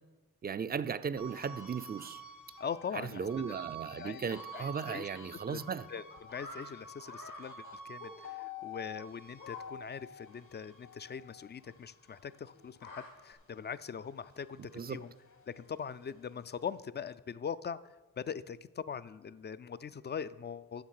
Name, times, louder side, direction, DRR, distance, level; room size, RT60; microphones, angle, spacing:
voice 1, 0.4-2.2 2.9-5.9 14.7-15.0, right 6 dB, 30° right, 0.4 m, -36 dB
sound 1, 1.2-13.8 14.2-15.9, left 1 dB, 65° left, 1.5 m, -49 dB
voice 2, 2.6-3.5 4.0-4.2 4.5-5.1 5.5-5.6 5.9-6.0 6.3-14.6 14.9-15.1 15.5-17.8 18.2-20.8, left 7 dB, 35° left, 0.4 m, -41 dB
sound 2, 5.9-6.7 7.1-7.4 8.0-8.6 9.4-9.6 9.9-10.0 10.3-10.4 10.7-10.8 12.5-13.3, left 3 dB, 80° left, 1.9 m, -47 dB
9.5 x 6.4 x 6.5 m
cardioid pair, 65°, 32 cm